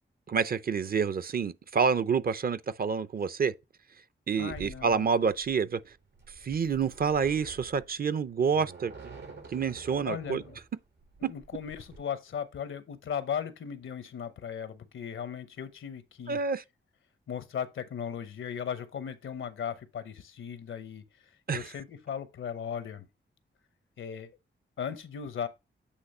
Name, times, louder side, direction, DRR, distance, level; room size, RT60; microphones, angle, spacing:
voice 1, 0.3-3.5 4.3-5.8 6.4-9.2 9.5-10.4 11.2-11.3 16.3-16.6 21.5-21.6, right 6 dB, 50° right, 0.5 m, -28 dB
voice 2, 4.4-5.1 10.0-10.6 11.2-16.4 17.3-21.0 21.5-23.1 24.0-24.3 24.8-25.5, left 8 dB, 85° left, 0.9 m, -37 dB
sound 1, 4.4-12.0, right 3 dB, 70° right, 4.4 m, -49 dB
8.3 x 3.0 x 5.4 m
cardioid pair, 80°, 20 cm